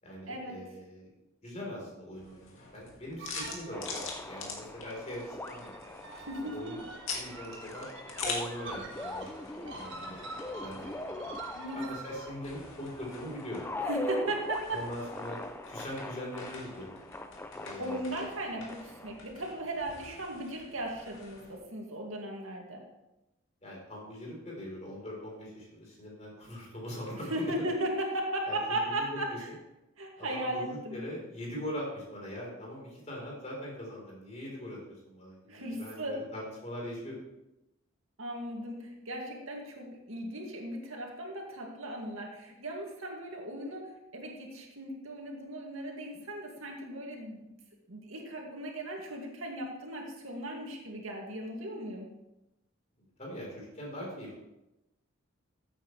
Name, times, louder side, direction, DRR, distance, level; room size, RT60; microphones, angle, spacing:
voice 1, 0.0-1.1 1.4-5.9 6.4-6.8 7.1-7.9 8.2-9.3 9.5-11.3 11.7-13.6 14.7-17.0 17.5-18.3 18.6-18.7 23.6-27.5 28.5-29.4 30.2-37.2 53.2-54.4, equal, 30° left, -3 dB, 4.0 m, -41 dB
sound 1, 2.2-21.6, left 4 dB, 70° left, 2.2 m, -46 dB
sound 2, 3.2-4.2 5.2-12.3, right 3 dB, 60° right, 1.6 m, -46 dB
sound 3, 3.7-19.2, left 1 dB, 10° left, 0.5 m, -42 dB
voice 2, 6.2-6.7 11.5-11.8 13.8-14.8 17.8-22.8 27.3-29.5 30.0-31.0 35.5-36.2 38.2-47.5 47.9-52.1, right 1 dB, 75° right, 0 dB, 2.3 m, -37 dB
15.0 x 8.7 x 3.3 m, 0.94 s
head